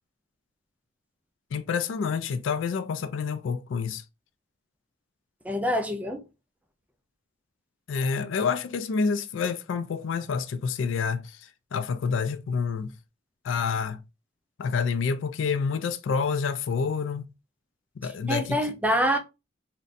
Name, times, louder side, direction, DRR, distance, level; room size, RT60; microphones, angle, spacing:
voice 1, 1.5-4.0 7.9-12.9 13.4-14.0 14.6-17.3 18.0-18.6, left 5 dB, 80° left, 0.4 m, -28 dB
voice 2, 5.4-6.2 18.3-19.2, equal, 10° right, 0.4 m, -25 dB
3.9 x 2.2 x 2.5 m
head